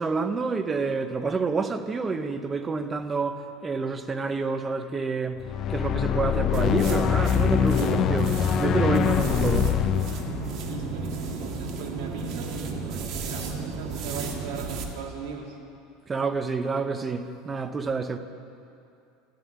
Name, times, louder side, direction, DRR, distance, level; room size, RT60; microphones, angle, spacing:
voice 1, 0.0-9.8 16.1-18.2, right 4 dB, 15° right, 0.7 m, -28 dB
sound 1, 5.4-11.7, left 9 dB, 35° left, 0.5 m, -25 dB
sound 2, 6.5-14.9, right 4 dB, 45° right, 1.8 m, -32 dB
voice 2, 10.5-15.6, right 4 dB, 65° right, 2.8 m, -39 dB
14.5 x 10.5 x 9.4 m
supercardioid pair, 160°, 0 cm